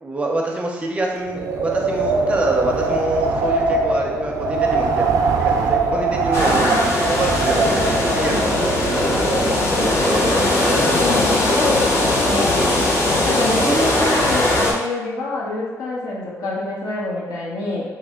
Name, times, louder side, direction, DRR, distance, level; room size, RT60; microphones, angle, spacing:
voice 1, 0.0-5.1 5.4-6.7 7.1-9.4 9.7-11.0 11.5-11.9 13.6-13.9, right 2 dB, 20° right, 0 dB, 0.5 m, -26 dB
Wind, 1.3-9.7, right 3 dB, 75° right, 0.4 m, -21 dB
sound 1, 6.3-14.7, left 1 dB, 45° left, 0.6 m, -19 dB
voice 2, 10.9-12.5 13.2-17.9, left 2 dB, 80° left, -6 dB, 1.0 m, -25 dB
3.1 x 2.1 x 3.6 m, 1.2 s
cardioid pair, 135°, 6 cm